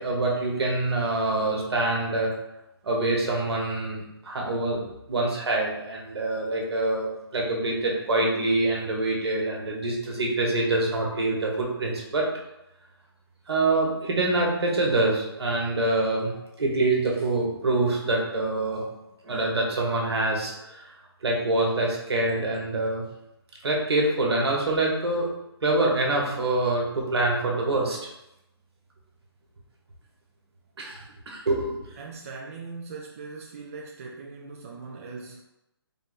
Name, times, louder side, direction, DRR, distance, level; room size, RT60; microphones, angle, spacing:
voice 1, 0.0-2.3 2.8-12.3 13.5-16.3 16.6-18.9 19.2-20.9 21.2-23.0 23.6-25.3 25.6-28.0 30.8-31.8, right 2 dB, 75° right, -1 dB, 1.2 m, -25 dB
voice 2, 32.0-35.4, right 4 dB, 35° right, -2 dB, 0.4 m, -40 dB
3.8 x 2.1 x 4.0 m, 0.89 s
hypercardioid pair, 160°, 14 cm